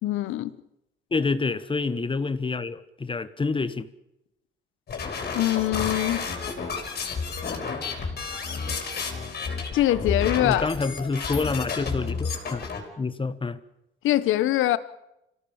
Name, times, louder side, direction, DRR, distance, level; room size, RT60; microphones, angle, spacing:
voice 1, 0.0-0.5 5.3-6.3 9.7-10.7 14.0-14.8, left 14 dB, 85° left, 1.1 m, -23 dB
voice 2, 1.1-3.9 10.4-12.7 13.0-13.6, left 4 dB, 25° left, 1.3 m, -27 dB
sound 1, 4.9-12.8, left 5 dB, 55° left, 5.6 m, -31 dB
26.0 x 17.0 x 7.2 m
cardioid pair, 90°, 20 cm